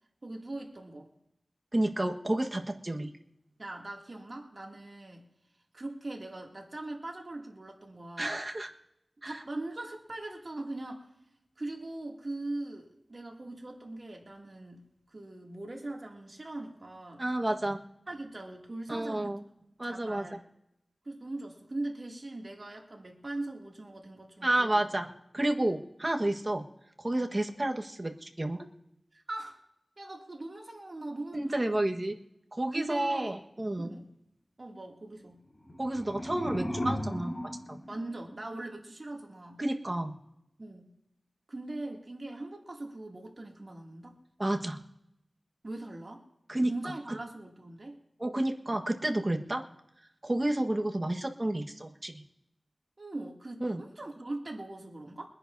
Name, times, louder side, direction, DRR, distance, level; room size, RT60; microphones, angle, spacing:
voice 1, 0.2-1.1 3.6-5.3 5.7-8.4 9.2-11.1 11.6-17.2 18.1-19.4 19.8-20.4 21.0-24.8 27.2-27.3 29.1-29.6 30.0-31.8 32.7-33.4 33.8-34.1 34.6-35.4 37.9-39.6 40.6-40.9 41.5-44.2 45.6-46.2 46.6-48.0 53.0-55.3, right 2 dB, 55° right, 0 dB, 2.6 m, -41 dB
voice 2, 1.7-3.1 8.2-8.7 9.2-9.4 17.2-17.8 18.9-19.4 19.8-20.3 24.4-25.1 25.3-26.6 27.0-28.7 31.3-32.1 32.5-34.0 35.8-37.8 39.6-40.1 44.4-44.8 46.5-46.7 48.2-49.6 50.2-52.2 53.6-53.8, right 1 dB, 35° right, 4 dB, 1.4 m, -30 dB
sound 1, 35.5-38.7, equal, 55° left, 5.0 m, -37 dB
24.5 x 9.9 x 2.7 m, 0.83 s
cardioid pair, 40°, 0 cm